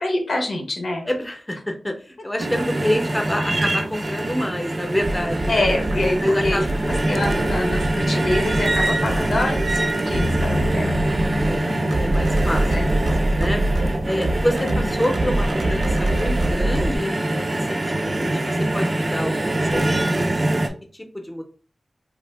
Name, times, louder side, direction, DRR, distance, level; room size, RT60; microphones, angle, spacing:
voice 1, 0.0-1.0 5.5-6.7 7.1-11.0 12.7-12.9 14.6-14.9, left 2 dB, 90° left, 2 dB, 0.8 m, -25 dB
voice 2, 1.0-5.7 6.2-6.7 7.1-7.6 11.4-13.6 14.0-20.3 20.9-21.4, left 1 dB, 15° left, 4 dB, 0.6 m, -28 dB
sound 1, 2.4-20.7, right 1 dB, 35° right, 0.4 m, -24 dB
sound 2, 5.0-17.0, right 1 dB, 90° right, 0.7 m, -25 dB
sound 3, 10.2-13.9, left 1 dB, 60° left, 0.4 m, -30 dB
2.7 x 2.4 x 3.3 m, 0.40 s
wide cardioid pair, 65°, 0 cm